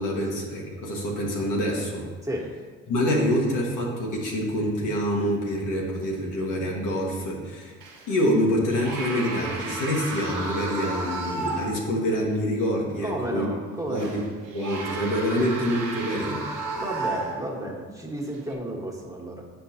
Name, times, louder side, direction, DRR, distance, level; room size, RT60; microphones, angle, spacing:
voice 1, 0.0-2.0 2.9-7.8 8.1-13.5 13.9-14.2 14.5-16.5, equal, 70° left, -2 dB, 1.3 m, -26 dB
voice 2, 2.2-2.6 13.0-14.3 16.7-19.5, right 1 dB, 10° right, -2 dB, 1.5 m, -32 dB
sound 1, 7.8-8.2 8.7-11.9 12.3-12.4 13.9-17.6 18.3-18.5, right 3 dB, 80° right, 0.8 m, -33 dB
7.6 x 4.6 x 2.8 m, 1.4 s
hypercardioid pair, 45°, 33 cm